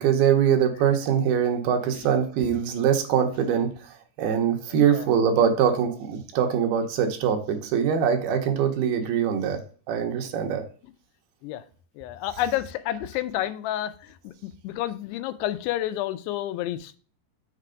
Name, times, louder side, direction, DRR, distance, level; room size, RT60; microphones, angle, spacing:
voice 1, 0.0-9.6 9.9-10.6, right 8 dB, 75° right, 5 dB, 2.6 m, -23 dB
voice 2, 4.7-5.1 11.4-11.6 12.0-17.0, left 13 dB, 85° left, 12 dB, 2.7 m, -30 dB
6.7 x 4.5 x 5.0 m, 0.41 s
omnidirectional pair, 4.7 m